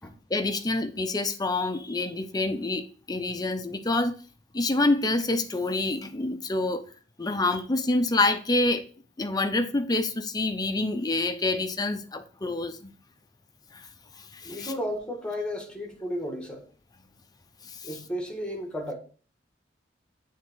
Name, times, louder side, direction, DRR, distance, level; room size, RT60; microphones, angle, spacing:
voice 1, 0.3-4.1 4.5-6.8 7.2-8.8 9.2-12.9 13.7-13.8 14.3-14.7 17.7-17.9, left 2 dB, 20° left, 0.6 m, -27 dB
voice 2, 14.4-16.6 17.8-18.9, equal, 5° left, 1.6 m, -33 dB
7.8 x 3.6 x 4.5 m
head